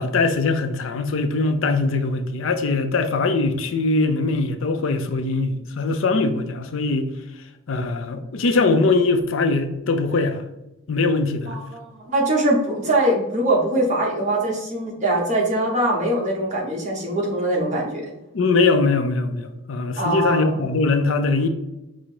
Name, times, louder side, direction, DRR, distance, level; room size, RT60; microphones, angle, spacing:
voice 1, 0.0-7.1 7.7-10.4 10.9-11.6 18.3-21.5, left 3 dB, 65° left, 7 dB, 0.5 m, -21 dB
voice 2, 11.5-18.0 20.0-20.6, right 1 dB, 35° right, -2 dB, 1.1 m, -22 dB
5.1 x 2.1 x 4.5 m, 0.96 s
head